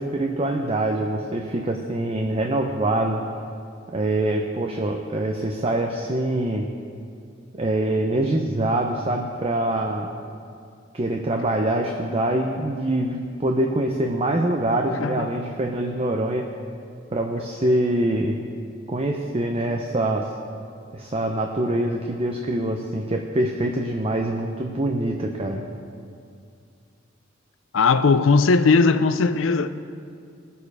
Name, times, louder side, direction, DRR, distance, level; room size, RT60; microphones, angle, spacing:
voice 1, 0.0-3.3 3.9-6.7 7.5-10.1 10.9-16.5 17.1-18.4 18.9-20.3 20.9-25.6, right 1 dB, 30° right, 0.6 m, -24 dB
voice 2, 15.0-15.4 27.7-29.7, left 4 dB, 80° left, 0.5 m, -18 dB
19.5 x 6.9 x 4.9 m
head